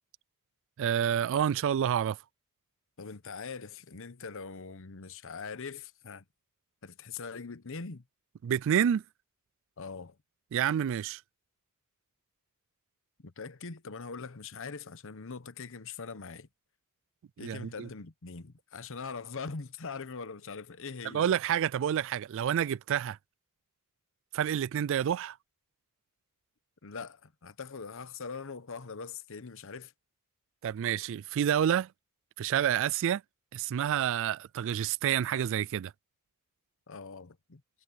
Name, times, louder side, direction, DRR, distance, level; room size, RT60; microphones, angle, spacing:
voice 1, 0.8-2.2 8.4-9.0 10.5-11.2 17.4-17.9 21.0-23.2 24.3-25.4 30.6-31.9 32.4-33.2 33.5-35.9, right 9 dB, 60° right, 0.3 m, -28 dB
voice 2, 3.0-6.2 6.8-8.0 9.8-10.2 13.2-16.5 17.4-21.2 26.8-29.9 36.9-37.6, left 5 dB, 65° left, 1.0 m, -42 dB
head